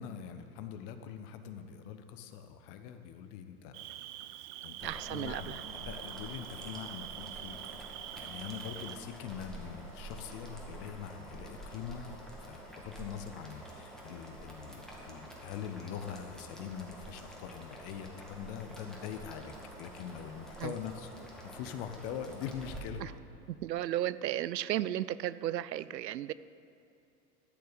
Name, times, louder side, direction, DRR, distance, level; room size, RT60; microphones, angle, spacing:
voice 1, 0.0-7.6 8.1-21.1 21.4-23.0, left 8 dB, 45° left, 8 dB, 1.2 m, -43 dB
Cricket, 3.7-9.0, right 13 dB, 35° right, 0.5 m, -45 dB
Boiling, 4.8-22.8, right 1 dB, ahead, 2.1 m, -48 dB
voice 2, 4.8-5.6 20.6-20.7 23.0-23.1 23.6-26.3, right 13 dB, 80° right, 17 dB, 0.5 m, -34 dB
13.5 x 6.7 x 8.3 m, 2.7 s
hypercardioid pair, 90°, 49 cm